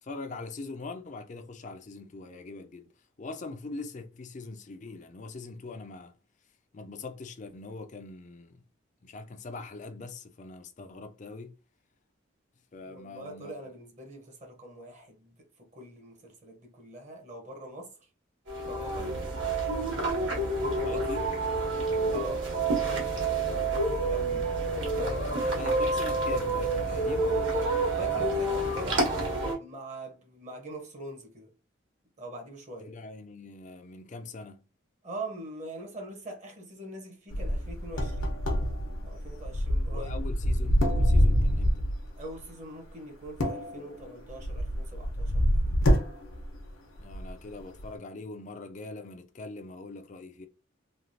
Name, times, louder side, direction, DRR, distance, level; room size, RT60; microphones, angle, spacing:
voice 1, 0.0-2.9 3.2-6.2 6.7-8.6 9.0-11.5 12.7-13.6 19.0-19.3 20.7-21.3 21.9-22.2 25.6-28.3 32.8-34.7 39.9-41.9 47.0-50.5, left 3 dB, 35° left, 0.4 m, -42 dB
voice 2, 12.9-15.3 15.6-17.9 18.7-19.1 20.1-21.0 22.1-22.5 22.8-24.5 24.8-25.6 27.8-31.5 32.2-32.9 35.0-38.3 39.0-40.2 42.2-45.8, right 1 dB, 35° right, 0.8 m, -43 dB
sound 1, 18.5-29.6, right 2 dB, 65° right, 1.3 m, -28 dB
sound 2, 37.3-42.1 43.2-46.7 47.0-47.3 47.8-47.9, equal, 85° left, 0.8 m, -26 dB
3.2 x 2.3 x 2.6 m
head